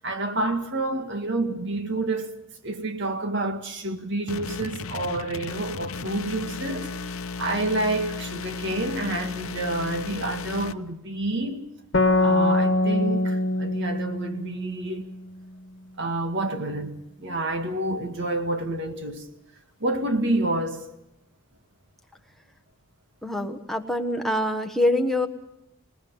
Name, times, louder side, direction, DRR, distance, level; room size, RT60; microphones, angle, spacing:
voice 1, 0.0-2.3 2.6-11.6 12.2-15.1 16.0-19.3 19.8-20.9, right 2 dB, 55° right, 2.0 m, -28 dB
sound 1, 4.3-10.7, left 4 dB, 75° left, 0.8 m, -34 dB
sound 2, 11.9-15.4, left 2 dB, 60° left, 1.4 m, -23 dB
voice 2, 23.2-25.3, left 1 dB, ahead, 1.3 m, -25 dB
26.0 x 19.5 x 5.5 m
head